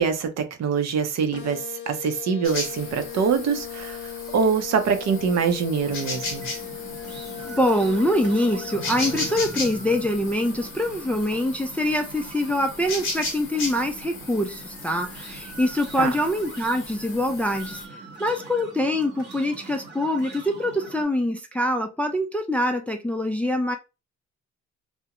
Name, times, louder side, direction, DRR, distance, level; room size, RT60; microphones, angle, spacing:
voice 1, 0.0-6.5 16.0-16.1, right 6 dB, 60° right, 0.6 m, -24 dB
sound 1, 1.3-9.3, left 10 dB, 70° left, 0.6 m, -38 dB
sound 2, 2.4-17.8, left 3 dB, 45° left, 0.9 m, -36 dB
sound 3, 5.8-21.0, right 3 dB, 35° right, 1.0 m, -42 dB
voice 2, 7.4-17.8 18.2-23.8, left 1 dB, 5° left, 0.3 m, -24 dB
2.4 x 2.1 x 2.8 m
cardioid pair, 90°, 30 cm